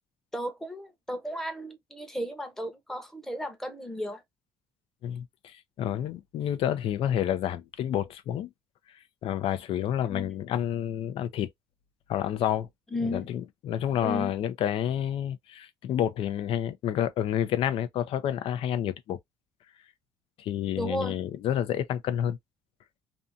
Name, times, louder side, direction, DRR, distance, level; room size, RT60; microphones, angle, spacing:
voice 1, 0.3-4.2 10.0-10.3 12.9-13.3 14.0-14.3 20.7-21.1, equal, 5° left, 0.8 m, -34 dB
voice 2, 5.0-8.5 9.2-11.5 12.1-12.7 13.1-19.2 20.4-22.4, left 10 dB, 65° left, 0.5 m, -29 dB
2.6 x 2.4 x 2.6 m
cardioid pair, 115°, 10 cm